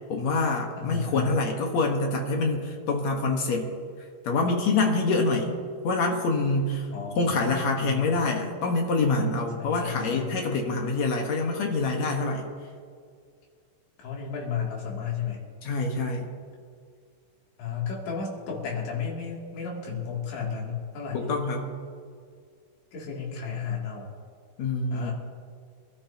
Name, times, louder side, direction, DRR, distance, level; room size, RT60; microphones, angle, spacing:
voice 1, 0.1-3.7 4.2-5.5 5.8-6.9 7.2-12.5 15.6-16.3 21.1-21.7 24.6-25.1, left 3 dB, 65° left, 1 dB, 1.8 m, -26 dB
voice 2, 0.8-1.4 6.9-8.1 9.6-10.4 14.0-15.4 17.6-21.3 22.9-24.1 24.9-25.1, left 6 dB, 90° left, -3 dB, 5.0 m, -33 dB
25.5 x 13.5 x 2.9 m, 2.1 s
omnidirectional pair, 4.9 m